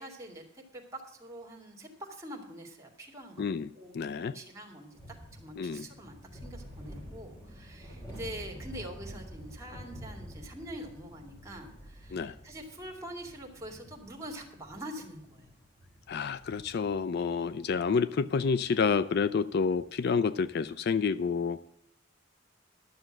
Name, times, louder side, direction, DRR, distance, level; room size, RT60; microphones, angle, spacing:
voice 1, 0.0-15.6, right 1 dB, 15° right, 2.3 m, -45 dB
voice 2, 3.4-3.7 3.9-4.4 5.6-5.9 12.1-12.4 16.1-21.7, left 5 dB, 55° left, 0.4 m, -29 dB
sound 1, 4.9-20.7, equal, 20° left, 4.7 m, -49 dB
12.0 x 7.1 x 7.6 m
head